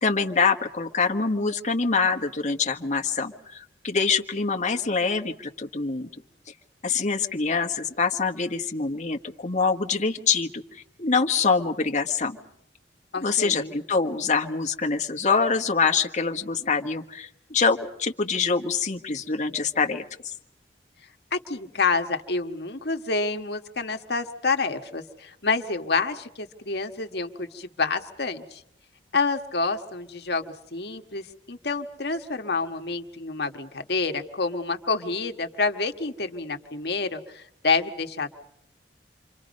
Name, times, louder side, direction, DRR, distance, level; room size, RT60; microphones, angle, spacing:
voice 1, 0.0-6.1 6.8-12.4 13.2-20.3, left 4 dB, 45° left, 4 dB, 1.5 m, -25 dB
voice 2, 13.1-13.7 21.3-28.6 29.1-38.3, left 4 dB, 65° left, 5 dB, 1.6 m, -28 dB
28.5 x 25.0 x 5.4 m, 0.70 s
head